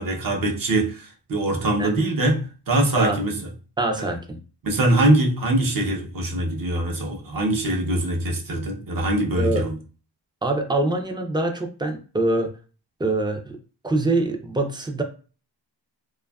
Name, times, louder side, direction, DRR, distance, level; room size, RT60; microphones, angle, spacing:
voice 1, 0.0-3.5 4.0-4.1 4.6-9.7, right 1 dB, 50° right, 0.7 m, -23 dB
voice 2, 3.8-4.4 9.4-9.7 10.4-12.5 13.0-13.6 13.8-15.0, right 2 dB, 10° right, 0.3 m, -24 dB
2.5 x 2.3 x 2.2 m
wide cardioid pair, 105°, 43 cm